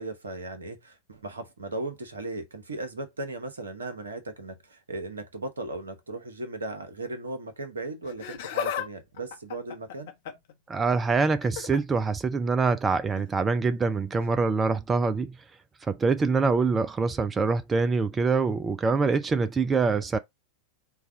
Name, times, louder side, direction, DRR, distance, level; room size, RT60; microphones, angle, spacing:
voice 1, 0.0-10.1, right 2 dB, 70° right, 1.0 m, -37 dB
Laughter, 8.0-8.9 9.2-10.5 11.4-11.8 13.1-13.3 14.2-14.3, left 8 dB, 55° left, 0.9 m, -34 dB
voice 2, 10.7-15.4 15.8-20.2, right 4 dB, 15° right, 0.4 m, -25 dB
4.6 x 2.3 x 4.8 m
figure-of-eight pair, 90°, 0 cm